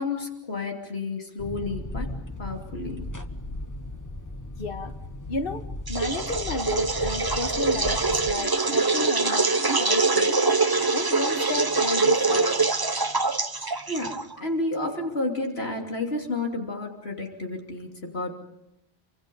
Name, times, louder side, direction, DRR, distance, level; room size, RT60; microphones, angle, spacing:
voice 1, 0.0-2.1 2.4-3.1 13.9-18.5, left 2 dB, 75° left, 2 dB, 3.3 m, -31 dB
sound 1, 1.4-8.3, left 1 dB, 20° left, 1.3 m, -36 dB
voice 2, 4.6-4.9 5.3-5.6 5.9-9.5 9.8-10.4 10.9-12.6, left 3 dB, 60° left, 8 dB, 1.6 m, -32 dB
sound 2, 5.9-14.4, right 3 dB, 25° right, 0.9 m, -24 dB
27.5 x 25.5 x 5.5 m, 0.83 s
omnidirectional pair, 1.1 m